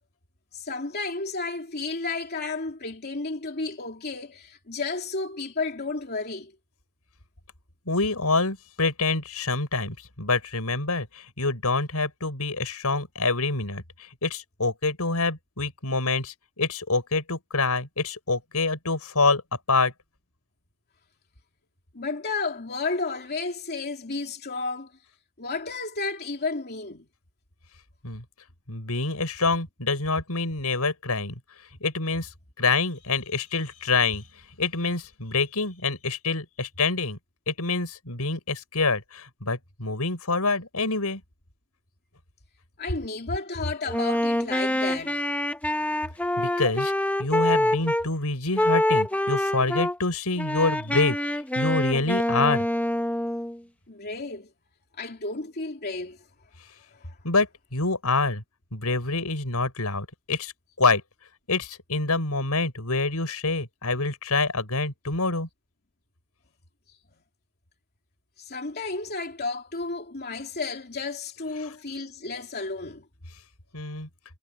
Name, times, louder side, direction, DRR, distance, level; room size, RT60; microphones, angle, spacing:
voice 1, 0.5-6.5 21.9-25.0 25.4-27.1 42.8-45.2 53.9-54.5 54.9-56.2 56.8-57.2 66.9-67.0 68.4-73.1, left 3 dB, 45° left, 3.0 m, -32 dB
voice 2, 7.9-19.4 19.7-19.9 28.0-28.2 28.7-31.3 31.8-32.3 32.6-34.2 34.6-37.2 37.5-41.2 46.4-46.9 47.2-52.7 57.2-58.4 58.7-60.5 60.8-61.0 61.5-65.5 73.7-74.1, left 3 dB, 90° left, 5.8 m, -26 dB
Wind instrument woodwind instrument, 43.9-48.1 48.6-50.0 50.4-53.6, left 1 dB, 5° left, 1.0 m, -25 dB
head